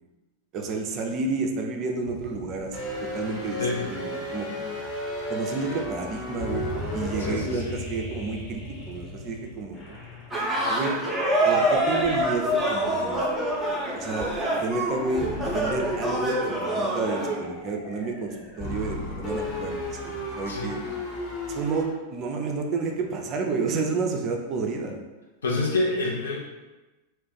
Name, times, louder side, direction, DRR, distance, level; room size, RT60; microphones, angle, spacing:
voice 1, 0.5-2.8 3.1-4.7 5.3-9.8 10.7-10.9 11.4-13.3 13.9-20.8 21.5-25.0, right 4 dB, 35° right, 2 dB, 0.4 m, -30 dB
sound 1, 2.1-4.2 4.9-5.0 6.1-11.2 11.8-17.6 18.1-20.5, left 3 dB, 40° left, 1.3 m, -40 dB
sound 2, 2.7-9.3 9.7-21.9, equal, 20° left, 1.0 m, -37 dB
voice 2, 7.2-7.7 20.5-21.1 25.4-26.4, left 3 dB, 70° left, -2 dB, 0.6 m, -28 dB
sound 3, 10.3-17.4, right 1 dB, 5° right, 0.7 m, -26 dB
2.4 x 2.2 x 3.8 m, 1.1 s
figure-of-eight pair, 90°, 0 cm